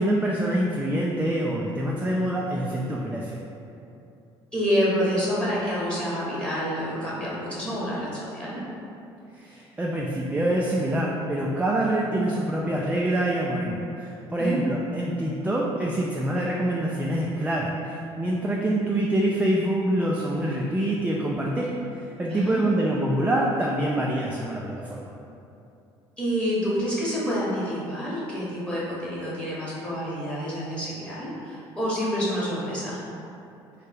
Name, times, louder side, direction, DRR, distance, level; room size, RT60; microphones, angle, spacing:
voice 1, 0.0-3.4 9.4-21.7 22.2-25.1, right 1 dB, 10° right, -3 dB, 0.3 m, -25 dB
voice 2, 4.5-8.6 14.4-14.6 22.3-22.8 26.2-33.0, equal, 5° left, -8 dB, 1.1 m, -28 dB
3.2 x 2.1 x 3.3 m, 2.7 s
hypercardioid pair, 60°, 13 cm